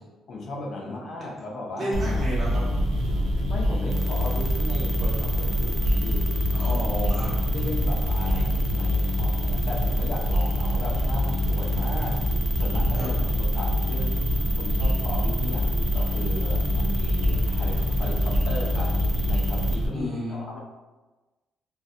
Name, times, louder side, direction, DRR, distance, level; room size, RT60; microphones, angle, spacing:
voice 1, 0.3-2.0 3.5-6.3 7.5-12.2 12.6-14.2 14.5-19.0 19.3-20.6, left 2 dB, 60° left, -1 dB, 0.5 m, -36 dB
voice 2, 1.8-2.7 6.5-7.3 12.9-13.1 19.9-20.4, equal, 45° right, -7 dB, 1.2 m, -31 dB
sound 1, 1.9-19.9, equal, 80° right, 0.5 m, -25 dB
sound 2, 3.9-19.8, equal, 15° right, 0.4 m, -35 dB
2.4 x 2.4 x 2.4 m, 1.2 s
cardioid pair, 90°, 0 cm